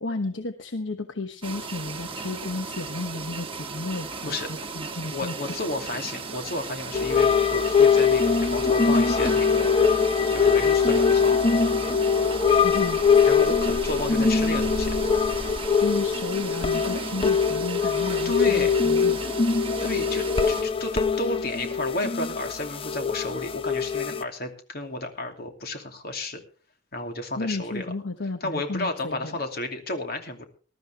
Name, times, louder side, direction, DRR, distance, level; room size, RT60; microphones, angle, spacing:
voice 1, 0.0-5.3 12.6-13.0 15.8-19.3 27.3-29.4, left 2 dB, 75° left, 8 dB, 1.1 m, -33 dB
sound 1, 1.4-20.6, right 5 dB, 30° right, 1.8 m, -36 dB
voice 2, 5.1-9.7 10.3-11.4 13.2-14.9 18.2-18.8 19.8-26.4 26.9-27.9 28.4-30.5, left 2 dB, 55° left, 5 dB, 2.7 m, -32 dB
sound 2, 6.9-24.2, left 5 dB, 30° left, 0.7 m, -22 dB
20.0 x 13.0 x 3.4 m, 0.38 s
head